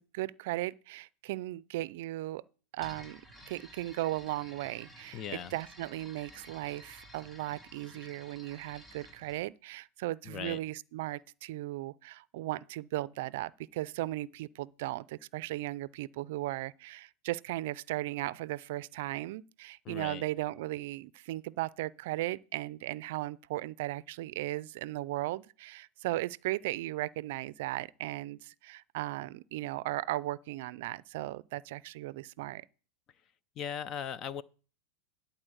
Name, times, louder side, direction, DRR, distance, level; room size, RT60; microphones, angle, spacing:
voice 1, 0.0-2.4 2.7-3.2 3.5-32.6, right 17 dB, 65° right, 0.4 m, -37 dB
sound 1, 2.8-9.4, equal, 10° left, 5.6 m, -53 dB
voice 2, 5.1-5.5 10.2-10.6 19.8-20.2 33.6-34.4, left 8 dB, 35° left, 0.7 m, -38 dB
11.0 x 4.2 x 7.9 m
hypercardioid pair, 115°, 0 cm